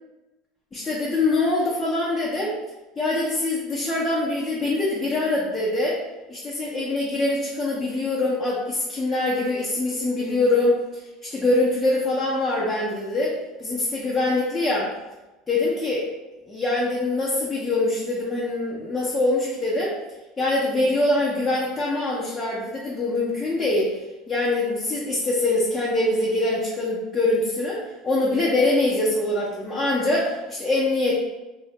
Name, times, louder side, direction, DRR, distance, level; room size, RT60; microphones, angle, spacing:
voice 1, 0.7-2.5 3.0-6.0 6.3-13.3 13.6-14.9 15.5-16.1 16.5-19.9 20.4-23.9 24.3-31.1, left 2 dB, 15° left, -7 dB, 0.6 m, -24 dB
3.0 x 2.1 x 2.9 m, 1.1 s
supercardioid pair, 115°, 0 cm